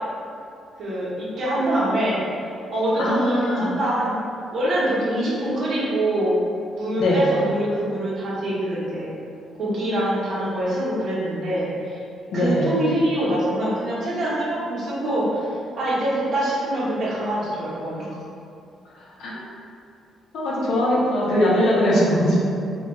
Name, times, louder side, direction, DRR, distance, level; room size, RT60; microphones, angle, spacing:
voice 1, 0.8-4.2 4.5-6.4 6.8-9.1 9.6-12.0 12.3-15.5 15.8-18.1, right 1 dB, 55° right, -7 dB, 0.8 m, -24 dB
voice 2, 3.0-3.7 7.0-7.2 12.3-12.7 19.2-19.3 20.3-22.4, left 1 dB, 75° left, -6 dB, 0.6 m, -20 dB
2.2 x 2.2 x 3.0 m, 2.5 s
cardioid pair, 90°, 0 cm